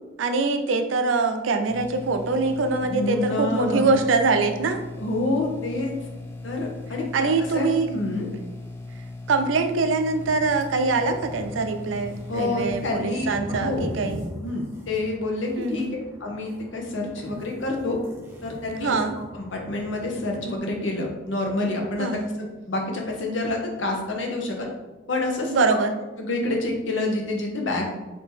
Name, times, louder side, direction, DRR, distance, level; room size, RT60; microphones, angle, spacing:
voice 1, 0.2-4.8 7.1-7.9 9.3-14.2 15.6-15.9 18.8-19.1 22.0-22.3 25.5-25.9, right 3 dB, 85° right, 7 dB, 0.5 m, -23 dB
sound 1, 1.7-12.9, left 2 dB, 10° left, 0.4 m, -38 dB
voice 2, 2.8-3.9 5.0-5.9 6.4-8.3 12.3-13.9 14.4-18.0 18.4-19.0 19.3-22.1 22.4-24.7 25.1-25.8 26.2-27.9, left 2 dB, 80° left, 1 dB, 0.9 m, -28 dB
sound 2, 10.2-20.6, equal, 15° right, 0.8 m, -40 dB
3.5 x 2.8 x 4.5 m, 1.2 s
head